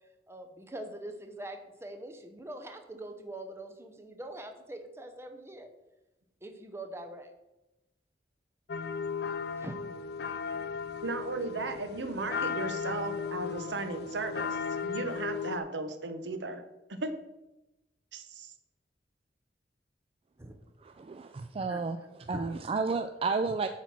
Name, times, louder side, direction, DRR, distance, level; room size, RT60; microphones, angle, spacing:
voice 1, 0.3-5.7 6.4-7.3 9.6-9.7 20.4-20.6 21.7-21.8 22.3-22.4, right 1 dB, 15° right, 5 dB, 0.8 m, -43 dB
sound 1, 8.7-15.6, left 6 dB, 65° left, 0.5 m, -36 dB
voice 2, 11.0-16.6 16.9-17.1 18.1-18.5, right 3 dB, 90° right, 9 dB, 0.8 m, -36 dB
voice 3, 20.8-22.0 22.3-23.7, right 4 dB, 35° right, 7 dB, 0.3 m, -31 dB
8.0 x 4.3 x 6.0 m, 0.98 s
head